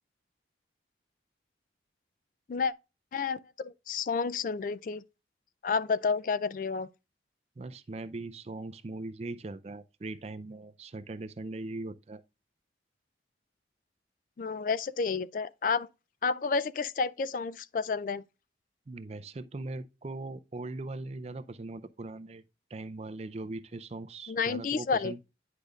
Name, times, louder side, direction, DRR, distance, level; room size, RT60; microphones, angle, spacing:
voice 1, 3.1-5.0 5.6-6.9 14.4-15.9 16.2-18.2 24.3-25.1, left 5 dB, 50° left, 0.3 m, -30 dB
voice 2, 7.6-12.2 18.9-22.4 22.7-25.2, right 2 dB, 35° right, 0.4 m, -40 dB
9.9 x 5.1 x 2.3 m
head